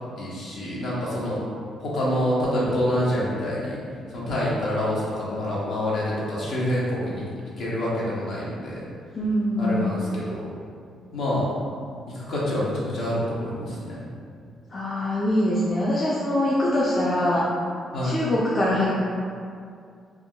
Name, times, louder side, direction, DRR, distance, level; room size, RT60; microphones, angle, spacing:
voice 1, 0.2-1.4 1.8-3.8 4.1-7.2 7.6-8.8 9.6-10.5 11.1-11.5 12.1-14.0 17.9-18.2, left 1 dB, 75° left, -7 dB, 0.8 m, -26 dB
voice 2, 9.2-9.9 14.7-17.5 18.0-19.0, left 1 dB, 40° left, -7 dB, 0.4 m, -23 dB
3.4 x 2.1 x 2.2 m, 2.3 s
cardioid pair, 90°, 0 cm